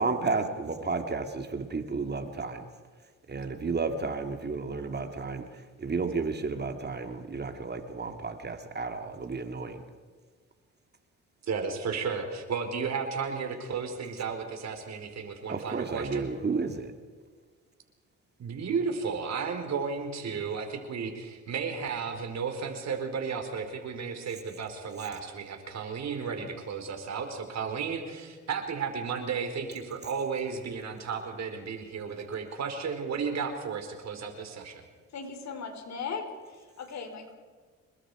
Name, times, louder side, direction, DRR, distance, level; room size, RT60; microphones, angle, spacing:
voice 1, 0.0-2.7 3.3-5.4 5.8-9.8 15.5-16.9, right 4 dB, 35° right, 6 dB, 2.4 m, -32 dB
voice 2, 11.5-16.3 18.4-34.8, right 5 dB, 60° right, 5 dB, 4.5 m, -33 dB
voice 3, 35.1-37.4, left 5 dB, 65° left, 6 dB, 4.5 m, -38 dB
27.0 x 22.0 x 5.0 m, 1.5 s
cardioid pair, 90°, 30 cm